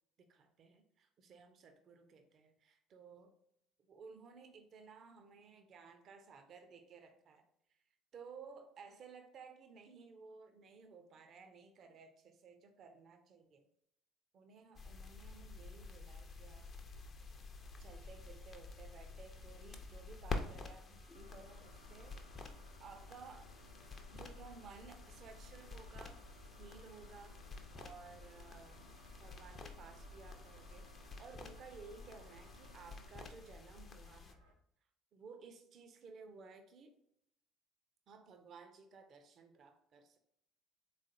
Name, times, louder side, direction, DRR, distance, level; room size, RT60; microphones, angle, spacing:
voice 1, 0.2-3.3 3.9-7.4 8.1-13.7 14.3-16.7 17.8-22.2 22.8-23.5 24.1-26.2 26.6-27.4 27.7-34.4 35.1-36.9 38.1-40.2, right 5 dB, 50° right, 7 dB, 0.5 m, -56 dB
sound 1, 14.8-34.3, left 3 dB, 40° left, 0.5 m, -50 dB
sound 2, 17.6-34.5, right 1 dB, 85° right, 0.7 m, -65 dB
sound 3, 21.1-33.1, left 1 dB, 90° left, 0.5 m, -60 dB
3.7 x 3.2 x 2.6 m, 0.76 s
figure-of-eight pair, 55°, 0 cm